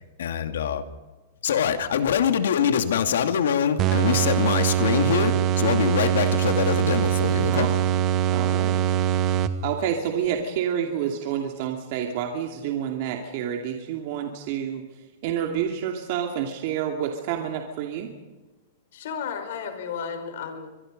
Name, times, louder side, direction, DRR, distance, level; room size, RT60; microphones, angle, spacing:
voice 1, 0.2-0.9 1.4-7.7, left 8 dB, 85° left, 8 dB, 2.4 m, -24 dB
sound 1, 3.8-9.9, right 10 dB, 30° right, 1.1 m, -23 dB
voice 2, 8.3-8.8 9.6-14.8 15.2-18.1, right 9 dB, 50° right, 2 dB, 2.6 m, -28 dB
voice 3, 18.9-20.7, left 6 dB, 65° left, 7 dB, 5.2 m, -33 dB
24.5 x 23.0 x 5.3 m, 1.2 s
supercardioid pair, 160°, 0 cm